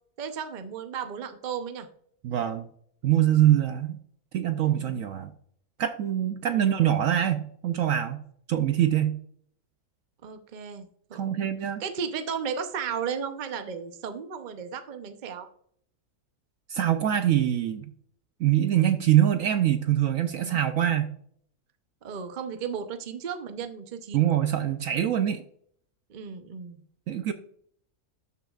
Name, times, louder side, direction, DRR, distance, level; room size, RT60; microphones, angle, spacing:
voice 1, 0.2-1.9 4.6-5.0 6.5-6.8 10.2-15.5 20.4-20.6 22.0-24.3 26.1-26.8, right 6 dB, 40° right, 7 dB, 0.7 m, -35 dB
voice 2, 2.2-2.7 3.0-4.0 4.3-5.3 5.8-8.2 8.5-9.2 11.1-11.8 16.7-17.9 18.4-21.1 24.1-25.4 27.1-27.3, right 11 dB, 65° right, 9 dB, 0.9 m, -24 dB
12.5 x 6.8 x 2.4 m, 0.63 s
omnidirectional pair, 1.7 m